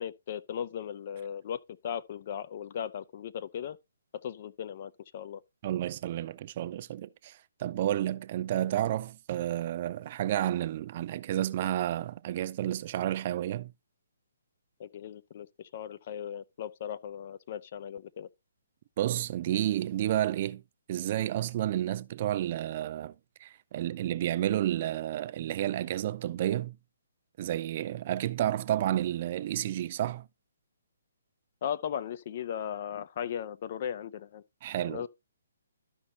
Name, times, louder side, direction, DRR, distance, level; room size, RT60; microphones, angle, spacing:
voice 1, 0.0-3.8 4.2-5.4 14.8-18.3 31.6-34.4 34.8-35.1, left 9 dB, 40° left, 0.5 m, -37 dB
voice 2, 5.6-13.7 19.0-20.6 20.9-23.1 23.4-26.8 27.4-30.3 34.6-35.1, right 12 dB, 40° right, 0.4 m, -31 dB
13.0 x 5.3 x 2.8 m
hypercardioid pair, 155°, 0 cm